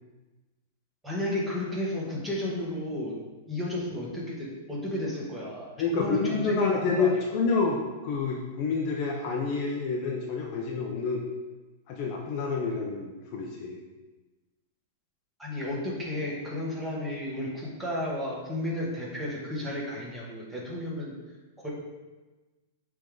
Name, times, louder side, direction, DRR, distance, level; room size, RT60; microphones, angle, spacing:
voice 1, 1.0-3.1 3.5-7.1 15.4-21.1 21.6-21.7, left 1 dB, 5° right, -6 dB, 1.5 m, -32 dB
voice 2, 5.8-11.2 11.9-13.8, left 4 dB, 35° left, -1 dB, 0.7 m, -28 dB
8.0 x 3.5 x 3.9 m, 1.2 s
supercardioid pair, 165°, 0 cm